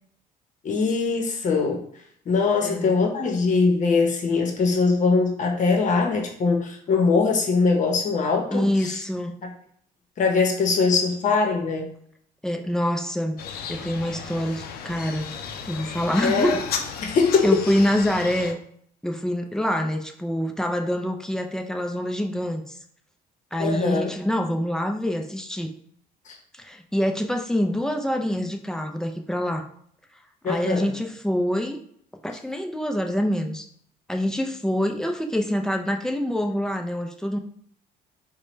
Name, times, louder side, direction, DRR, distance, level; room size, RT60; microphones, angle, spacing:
voice 1, 0.6-1.8 2.3-9.0 9.4-9.5 10.2-11.9 16.2-16.5 17.0-17.6 23.6-24.1 26.3-26.4 30.4-30.9, left 4 dB, 45° left, 2 dB, 0.8 m, -22 dB
voice 2, 2.6-2.9 8.5-9.3 12.4-13.4 13.7-15.3 15.7-16.7 17.4-18.6 19.0-22.8 23.5-25.7 26.5-29.6 30.5-31.8 32.2-33.6 34.1-37.4, equal, 5° left, 3 dB, 0.4 m, -25 dB
sound 1, 13.4-18.5, left 7 dB, 65° left, 0.5 m, -34 dB
4.8 x 2.2 x 3.1 m, 0.64 s
cardioid pair, 110°, 17 cm